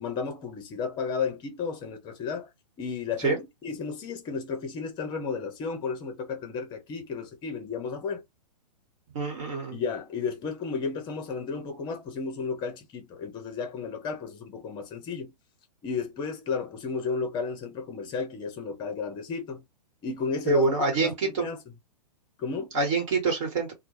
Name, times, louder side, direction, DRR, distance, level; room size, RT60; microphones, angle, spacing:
voice 1, 0.0-2.5 2.8-8.2 9.7-15.3 15.8-19.6 20.0-21.6 22.4-22.7, left 5 dB, 20° left, 0.7 m, -33 dB
voice 2, 9.1-9.8 20.5-21.5 22.7-23.7, right 3 dB, 50° right, 1.1 m, -25 dB
2.2 x 2.0 x 3.0 m
figure-of-eight pair, 115°, 21 cm